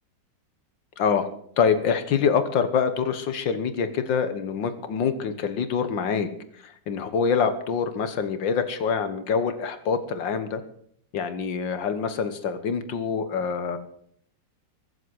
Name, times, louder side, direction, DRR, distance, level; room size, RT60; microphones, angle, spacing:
voice 1, 1.0-1.3 1.6-6.3 6.6-10.6 11.1-13.8, left 6 dB, 85° left, 10 dB, 1.9 m, -25 dB
22.5 x 7.9 x 7.7 m, 0.65 s
omnidirectional pair, 2.0 m